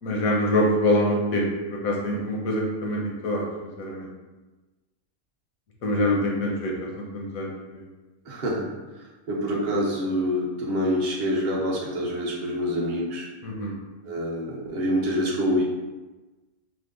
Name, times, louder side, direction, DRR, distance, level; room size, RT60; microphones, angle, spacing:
voice 1, 0.0-3.5 3.8-4.1 5.8-7.9 13.4-13.7, equal, 75° left, -1 dB, 1.3 m, -25 dB
voice 2, 8.3-13.3 14.0-15.6, equal, 40° right, -5 dB, 0.8 m, -26 dB
5.0 x 2.1 x 3.8 m, 1.2 s
omnidirectional pair, 1.5 m